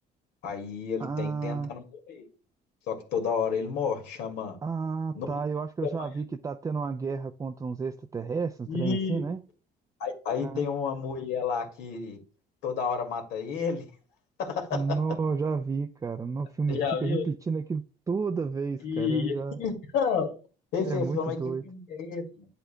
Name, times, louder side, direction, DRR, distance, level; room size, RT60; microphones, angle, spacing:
voice 1, 0.4-2.3 2.9-4.6 5.1-5.4 5.8-6.1 8.7-9.3 10.0-12.2 12.6-13.8 14.4-15.0 16.7-17.3 18.8-20.3 20.7-21.4 21.6-22.5, left 5 dB, 85° left, 2.2 m, -31 dB
voice 2, 1.0-1.7 4.6-9.4 10.4-10.6 14.7-19.6 20.8-21.6, right 5 dB, 20° right, 0.4 m, -31 dB
9.2 x 8.1 x 2.2 m
cardioid pair, 110°, 17 cm